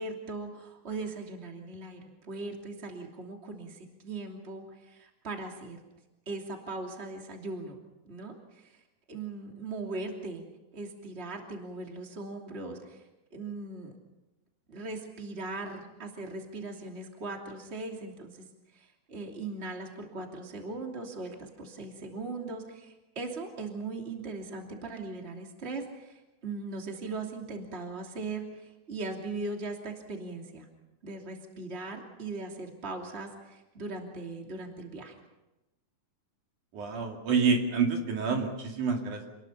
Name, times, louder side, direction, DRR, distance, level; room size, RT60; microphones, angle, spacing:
voice 1, 0.0-5.8 6.3-7.8 8.0-8.7 9.1-10.5 10.7-13.0 13.3-13.9 14.7-18.5 18.7-30.7 31.0-35.2, right 3 dB, 20° right, 2 dB, 2.9 m, -39 dB
voice 2, 36.7-39.3, right 5 dB, 75° right, 2 dB, 4.1 m, -28 dB
27.5 x 21.0 x 5.7 m, 0.99 s
omnidirectional pair, 3.6 m